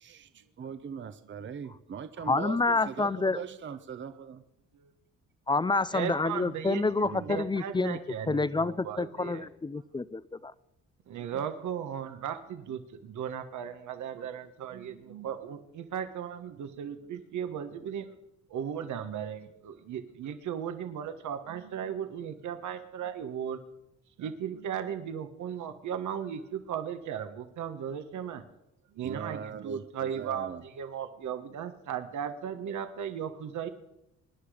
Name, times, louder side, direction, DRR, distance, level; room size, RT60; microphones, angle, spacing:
voice 1, 0.0-4.4 7.0-7.4 29.0-30.6, right 7 dB, 40° right, 10 dB, 0.8 m, -41 dB
voice 2, 2.3-3.4 5.5-8.0 8.3-10.5, left 3 dB, 15° left, 18 dB, 0.5 m, -28 dB
voice 3, 5.9-9.5 11.1-18.1 18.5-23.6 24.2-28.4 28.9-33.7, right 8 dB, 75° right, 8 dB, 1.3 m, -36 dB
24.5 x 10.0 x 5.0 m, 0.88 s
cardioid pair, 90°, 30 cm